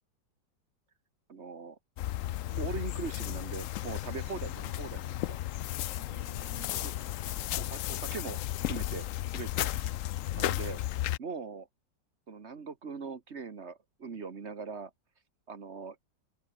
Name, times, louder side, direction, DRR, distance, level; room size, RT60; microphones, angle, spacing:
voice 1, 1.3-1.8 2.5-5.4 6.8-6.9 7.6-8.4 8.7-9.7 10.3-10.8 11.2-11.7 12.3-14.9 15.5-16.0, right 5 dB, 40° right, 1.6 m, -41 dB
sound 1, 2.0-11.2, left 14 dB, 75° left, 0.7 m, -34 dB
voice 2, 6.0-7.7 9.7-10.2, right 4 dB, 80° right, 4.2 m, -55 dB
omnidirectional pair, 1.9 m